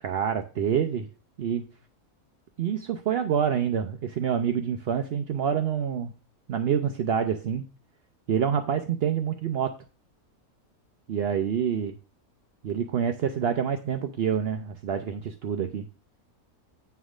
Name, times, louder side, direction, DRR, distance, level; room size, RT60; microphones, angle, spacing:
voice 1, 0.0-1.1 1.4-1.6 2.6-6.1 6.5-7.7 8.3-9.7 11.1-12.0 12.6-15.9, right 8 dB, 60° right, 8 dB, 0.6 m, -27 dB
9.5 x 3.4 x 6.2 m, 0.35 s
omnidirectional pair, 1.6 m